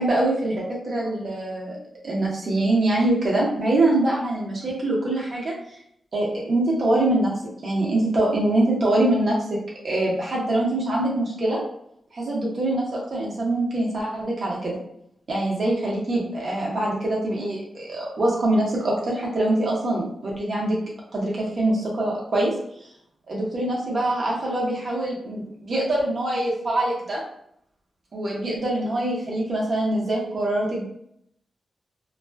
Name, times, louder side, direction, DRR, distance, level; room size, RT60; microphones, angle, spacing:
voice 1, 0.0-1.8 2.0-5.5 6.1-7.3 7.6-9.6 9.8-11.6 12.1-14.8 15.3-20.8 21.1-22.5 23.3-27.2 28.1-30.9, right 1 dB, 60° right, -4 dB, 0.9 m, -24 dB
2.4 x 2.3 x 2.3 m, 0.72 s
cardioid pair, 55°, 0 cm